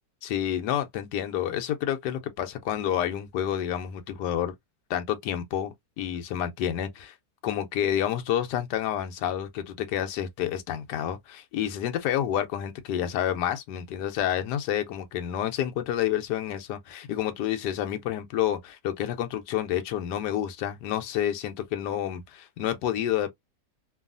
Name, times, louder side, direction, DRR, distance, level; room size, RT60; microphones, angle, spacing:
voice 1, 0.2-4.5 4.9-7.1 7.4-23.3, left 10 dB, 90° left, 1.2 m, -29 dB
3.1 x 2.3 x 2.4 m
omnidirectional pair, 1.8 m